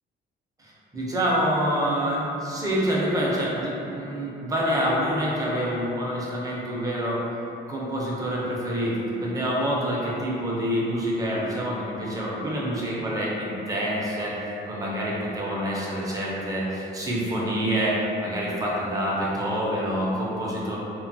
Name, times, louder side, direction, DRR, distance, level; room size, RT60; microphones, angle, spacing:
voice 1, 0.6-7.2 7.7-14.4 14.6-20.8, equal, 20° right, -5 dB, 0.4 m, -27 dB
3.1 x 2.2 x 2.6 m, 2.9 s
cardioid pair, 165°, 20 cm